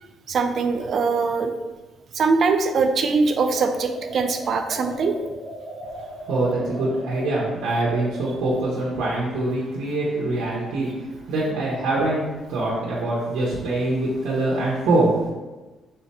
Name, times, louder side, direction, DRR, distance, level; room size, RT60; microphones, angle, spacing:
voice 1, 0.3-1.5 2.1-5.1, right 4 dB, 60° right, 7 dB, 0.4 m, -22 dB
sound 1, 3.6-8.4, right 1 dB, 30° left, 1.0 m, -38 dB
voice 2, 6.3-15.2, right 2 dB, 90° right, -6 dB, 0.8 m, -24 dB
3.7 x 2.1 x 4.1 m, 1.2 s
cardioid pair, 90°, 0 cm